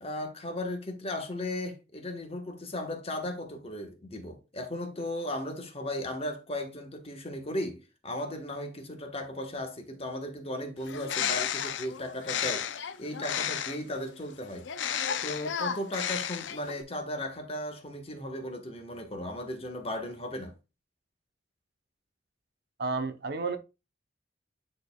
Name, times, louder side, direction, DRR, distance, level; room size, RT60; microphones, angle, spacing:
voice 1, 0.0-20.5, left 1 dB, 35° left, 1.3 m, -36 dB
Bird, 10.8-13.9 14.6-16.8, left 8 dB, 75° left, 0.5 m, -32 dB
voice 2, 22.8-23.6, right 4 dB, 60° right, 0.7 m, -31 dB
9.4 x 4.4 x 2.3 m
head